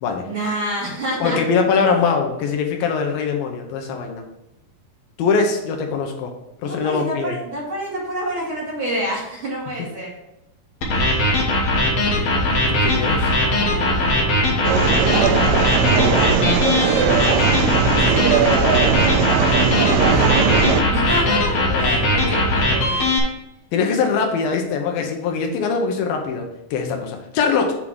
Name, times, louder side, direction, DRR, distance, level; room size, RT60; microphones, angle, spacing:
voice 1, 0.2-1.4 6.6-10.1 13.3-15.5 16.7-20.3 20.9-23.0, right 1 dB, 35° right, -6 dB, 3.0 m, -29 dB
voice 2, 1.2-4.2 5.2-6.3 6.6-7.4 12.8-13.3 21.7-22.1 23.7-27.8, left 5 dB, 85° left, 3 dB, 2.8 m, -22 dB
sound 1, 10.8-23.2, left 1 dB, 60° left, 2.3 m, -19 dB
sound 2, 14.6-20.8, right 6 dB, 80° right, 2.2 m, -19 dB
7.3 x 3.9 x 6.2 m, 0.90 s
omnidirectional pair, 4.1 m